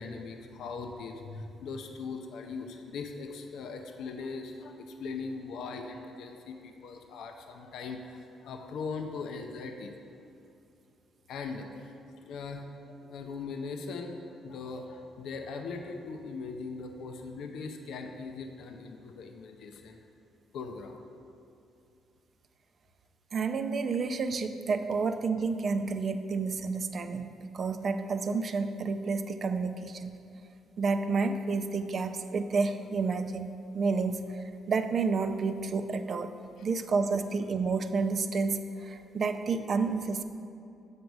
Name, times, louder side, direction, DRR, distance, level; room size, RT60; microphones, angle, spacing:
voice 1, 0.0-9.9 11.3-20.0 20.5-21.0 36.6-36.7, left 4 dB, 75° left, 4 dB, 0.6 m, -40 dB
voice 2, 23.3-30.1 30.8-36.3 36.6-40.2, right 4 dB, 50° right, 8 dB, 0.4 m, -30 dB
8.1 x 5.1 x 4.7 m, 2.6 s
cardioid pair, 90°, 0 cm